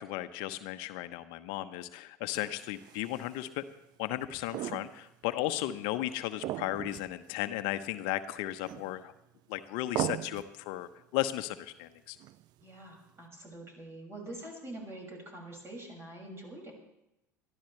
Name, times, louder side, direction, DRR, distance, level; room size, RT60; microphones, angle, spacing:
voice 1, 0.0-3.6 4.0-9.1 9.5-12.2, left 14 dB, 60° left, 11 dB, 1.0 m, -35 dB
sound 1, 2.3-3.5 4.2-5.3 5.5-5.6 6.4-7.2 7.5-7.6 8.6-9.2 10.0-10.6 12.2-12.7, right 14 dB, 50° right, 0.4 m, -38 dB
voice 2, 12.6-16.7, right 1 dB, 25° right, -1 dB, 6.3 m, -45 dB
22.5 x 14.0 x 3.3 m, 0.89 s
hypercardioid pair, 70°, 9 cm